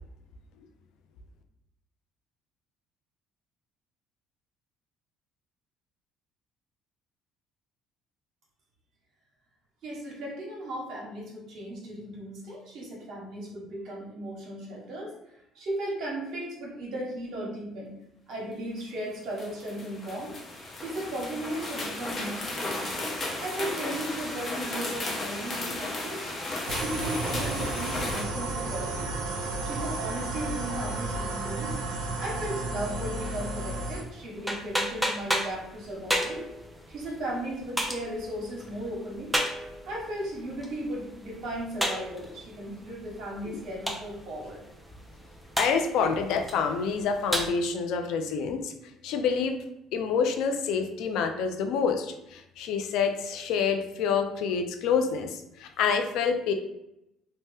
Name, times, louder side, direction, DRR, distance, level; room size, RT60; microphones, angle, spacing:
voice 1, 9.8-15.1 15.5-17.9 18.3-20.4 20.8-22.9 23.4-26.2 26.7-29.1 29.6-31.8 32.2-36.5 36.9-39.3 39.9-44.6, right 1 dB, 65° right, -3 dB, 1.0 m, -36 dB
sound 1, 18.8-18.9 19.4-28.2, left 2 dB, 35° left, 0.8 m, -34 dB
sound 2, 26.7-34.0, right 2 dB, 90° right, 0.5 m, -32 dB
sound 3, 32.9-47.5, equal, ahead, 0.5 m, -35 dB
voice 2, 45.6-48.7 49.0-49.6 49.9-56.5, left 6 dB, 75° left, 6 dB, 0.4 m, -27 dB
2.8 x 2.1 x 3.3 m, 0.84 s
supercardioid pair, 90°, 0 cm